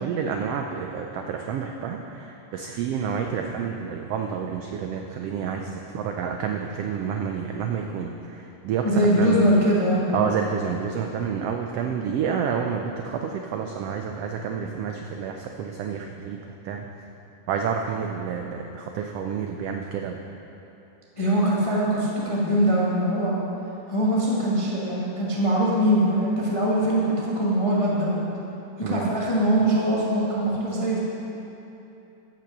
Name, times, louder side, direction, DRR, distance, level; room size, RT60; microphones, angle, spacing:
voice 1, 0.0-8.8 9.2-9.4 10.1-16.4 16.6-16.8 17.5-20.2 28.8-29.1, right 7 dB, 90° right, 3 dB, 1.3 m, -29 dB
voice 2, 8.8-10.0 21.2-23.3 23.9-28.2 28.8-31.0, right 1 dB, 35° left, -6 dB, 0.5 m, -22 dB
15.0 x 6.0 x 6.0 m, 3.0 s
omnidirectional pair, 3.4 m